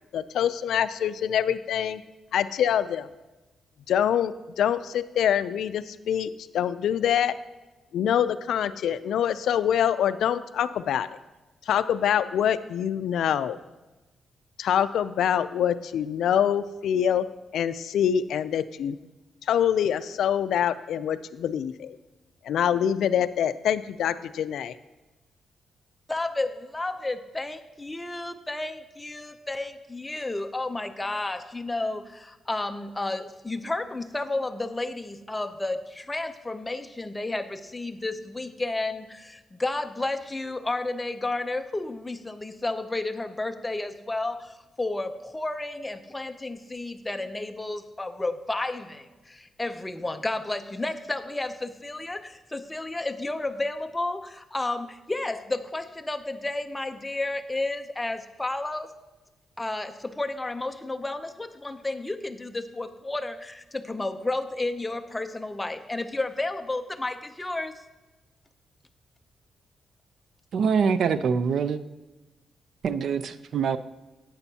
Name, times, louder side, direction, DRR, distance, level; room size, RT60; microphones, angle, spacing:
voice 1, 0.1-2.0 2.3-3.1 3.9-7.4 7.9-11.1 11.7-13.6 14.6-17.3 17.5-19.0 19.4-22.0 22.4-24.8, left 9 dB, 80° left, 13 dB, 0.3 m, -25 dB
voice 2, 26.1-58.9 59.6-67.8, left 2 dB, 15° left, 7 dB, 0.5 m, -32 dB
voice 3, 70.5-71.8 72.8-73.8, right 6 dB, 65° right, 13 dB, 0.4 m, -24 dB
11.0 x 9.0 x 2.8 m, 1.1 s
cardioid pair, 125°, 0 cm